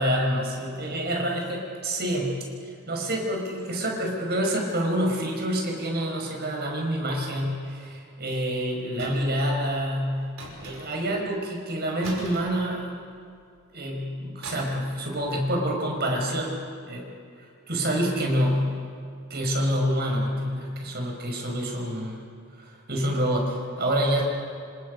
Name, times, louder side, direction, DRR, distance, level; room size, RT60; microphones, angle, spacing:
voice 1, 0.0-2.4 2.9-10.3 10.6-12.9 13.7-16.6 16.8-17.1 17.4-18.7 19.3-22.2 22.6-24.2, equal, 45° right, 1 dB, 5.4 m, -27 dB
sound 1, 9.0-9.4 10.4-11.1 12.0-13.2 14.4-14.9 15.2-15.4, right 2 dB, 65° right, 5.7 m, -41 dB
28.0 x 26.5 x 5.4 m, 2.3 s
head